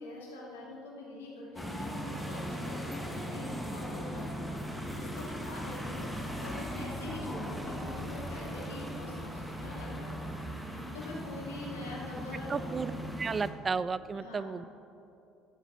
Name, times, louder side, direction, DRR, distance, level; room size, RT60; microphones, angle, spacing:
voice 1, 0.0-4.3 4.9-10.3 10.6-12.6 14.1-14.5, left 1 dB, 75° left, -4 dB, 2.6 m, -44 dB
sound 1, 1.6-13.5, equal, ahead, 1.6 m, -38 dB
voice 2, 12.5-12.9 13.2-14.7, right 5 dB, 30° right, 16 dB, 0.3 m, -33 dB
12.0 x 8.0 x 6.3 m, 2.9 s
figure-of-eight pair, 60°, 0 cm